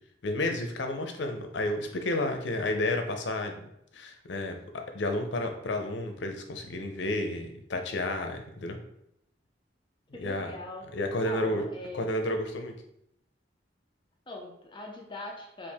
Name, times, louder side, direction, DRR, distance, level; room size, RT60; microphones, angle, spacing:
voice 1, 0.2-3.6 3.9-8.8 10.2-10.5 10.9-11.7 11.9-12.7, left 1 dB, 80° left, 4 dB, 0.6 m, -31 dB
voice 2, 10.1-10.9 11.2-12.2 14.3-15.7, left 1 dB, 25° left, 1 dB, 0.6 m, -41 dB
4.4 x 2.5 x 3.4 m, 0.78 s
head